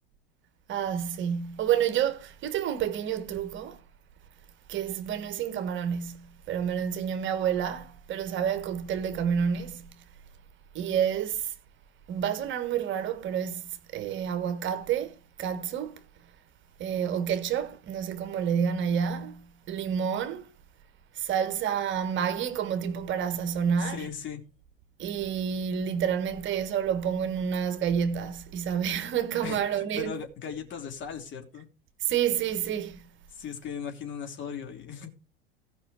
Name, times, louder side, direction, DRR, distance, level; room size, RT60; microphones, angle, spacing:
voice 1, 0.7-3.8 4.7-9.9 10.7-11.5 12.1-13.6 13.9-15.9 16.8-20.4 21.2-24.1 25.0-30.1 32.1-33.0, right 8 dB, 40° right, 1.4 m, -29 dB
voice 2, 23.7-24.4 29.4-31.7 33.3-35.1, left 7 dB, 40° left, 3.1 m, -38 dB
16.5 x 5.5 x 4.8 m
hypercardioid pair, 85°, 30 cm